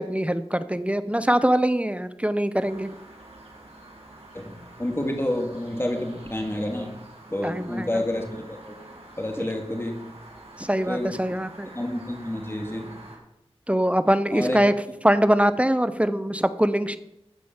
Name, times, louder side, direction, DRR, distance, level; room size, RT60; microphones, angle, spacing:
voice 1, 0.0-2.9 7.4-7.9 10.6-11.7 13.7-14.7 15.0-17.0, right 1 dB, 10° right, 12 dB, 0.7 m, -23 dB
sound 1, 2.6-13.2, right 2 dB, 80° right, 2.6 m, -47 dB
voice 2, 4.3-7.0 7.3-8.8 9.2-10.0 10.9-11.2 11.7-13.0 14.3-14.6, left 1 dB, 25° left, 2 dB, 2.4 m, -29 dB
13.5 x 5.0 x 7.3 m, 0.88 s
wide cardioid pair, 40°, 10 cm